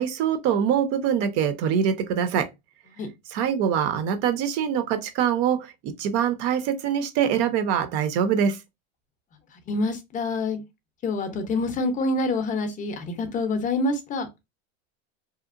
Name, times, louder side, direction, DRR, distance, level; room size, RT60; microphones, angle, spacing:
voice 1, 0.0-2.5 3.3-8.6, right 8 dB, 45° right, 0.5 m, -24 dB
voice 2, 9.5-10.6 11.0-14.3, left 2 dB, 25° left, 0.5 m, -27 dB
2.8 x 2.0 x 2.4 m
supercardioid pair, 135°, 34 cm